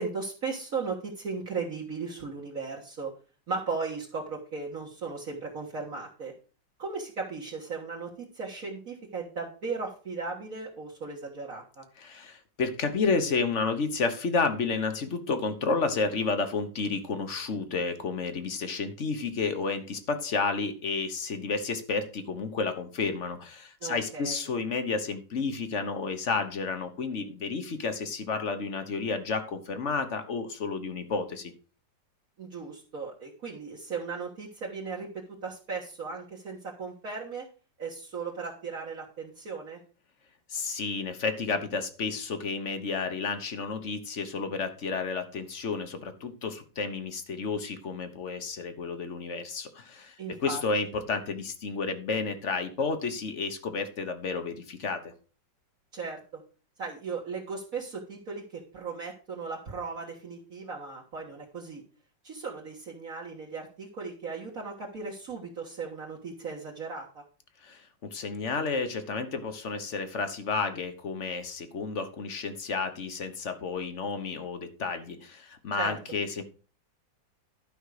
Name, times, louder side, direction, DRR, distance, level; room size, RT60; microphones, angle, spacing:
voice 1, 0.0-3.1 3.5-6.3 6.8-11.8 23.8-24.5 32.4-35.1 35.4-37.5 37.8-39.8 50.2-50.6 55.9-56.4 56.8-61.8 62.2-67.2 75.8-75.9, right 4 dB, 50° right, -3 dB, 1.9 m, -36 dB
voice 2, 12.0-31.5 40.5-55.1 67.6-76.4, left 4 dB, 45° left, 9 dB, 1.3 m, -31 dB
12.0 x 5.5 x 4.9 m, 0.37 s
omnidirectional pair, 2.0 m